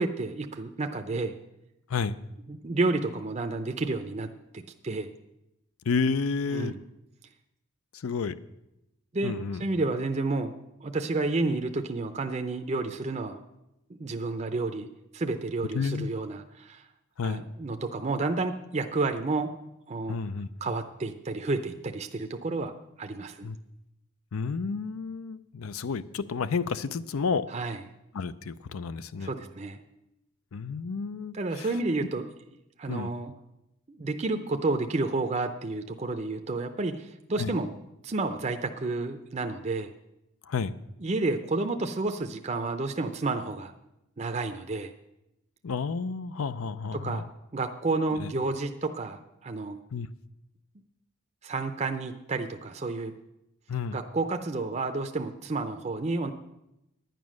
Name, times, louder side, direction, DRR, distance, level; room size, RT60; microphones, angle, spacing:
voice 1, 0.0-1.3 2.5-4.3 4.5-5.1 6.5-6.8 9.1-10.5 10.8-13.4 14.0-14.9 15.1-16.8 17.2-19.5 19.9-20.2 20.6-22.7 23.0-23.5 27.5-27.8 29.2-29.8 31.3-32.3 32.8-33.3 33.9-37.8 38.0-39.9 41.0-43.7 44.2-44.9 46.9-47.2 47.5-49.8 51.4-53.1 53.9-56.3, right 3 dB, 30° right, 6 dB, 0.5 m, -30 dB
voice 2, 5.9-6.7 8.0-8.3 9.2-9.6 15.7-16.1 17.2-17.4 20.1-20.5 23.4-23.6 24.3-27.5 28.1-29.3 30.5-31.7 32.9-33.1 37.4-37.5 40.5-40.7 45.6-47.2 48.2-48.3 49.9-50.1 53.7-54.0, left 5 dB, 75° left, 15 dB, 0.5 m, -30 dB
10.5 x 9.1 x 6.3 m, 0.89 s
head